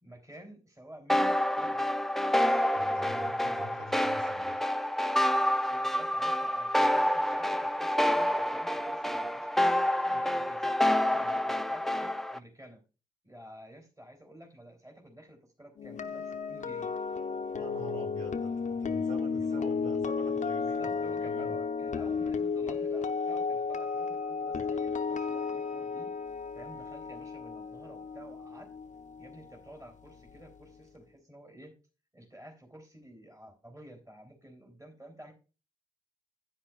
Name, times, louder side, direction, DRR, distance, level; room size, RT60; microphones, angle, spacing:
voice 1, 0.0-1.9 3.7-3.9 5.7-9.7 10.1-12.8 13.2-16.9 19.3-19.7 20.4-26.1 26.5-28.7 29.2-31.7 32.1-35.3, right 1 dB, 20° right, 0 dB, 3.3 m, -51 dB
sound 1, 1.1-12.4, left 1 dB, ahead, 0.5 m, -28 dB
voice 2, 2.7-4.6 17.5-21.6, equal, 45° right, -1 dB, 3.6 m, -46 dB
sound 2, 15.8-29.8 30.1-30.4, left 5 dB, 45° left, 0.8 m, -33 dB
10.0 x 8.6 x 2.4 m, 0.33 s
hypercardioid pair, 45°, 17 cm